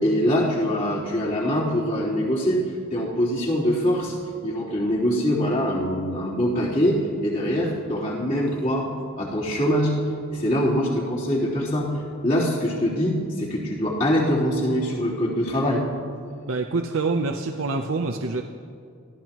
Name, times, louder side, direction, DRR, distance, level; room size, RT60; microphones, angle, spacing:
voice 1, 0.0-4.1 4.4-8.9 9.2-9.9 10.3-11.9 12.2-15.8, equal, 40° left, -8 dB, 3.7 m, -23 dB
voice 2, 16.5-18.4, right 3 dB, 80° right, 3 dB, 0.8 m, -26 dB
26.5 x 15.5 x 3.1 m, 2.3 s
head